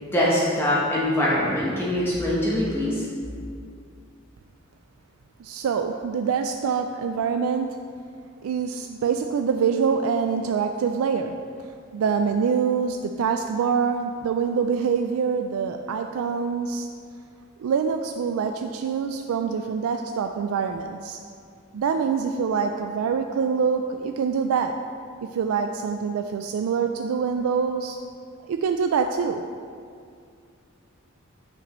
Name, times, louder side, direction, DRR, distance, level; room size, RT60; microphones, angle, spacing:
voice 1, 0.0-3.0, left 1 dB, 10° left, -7 dB, 0.9 m, -23 dB
voice 2, 5.4-7.8 8.4-11.3 11.9-16.9 17.6-21.2 21.7-24.7 25.3-28.0 28.5-29.4, right 6 dB, 90° right, 6 dB, 0.3 m, -25 dB
7.8 x 6.0 x 3.0 m, 2.3 s
head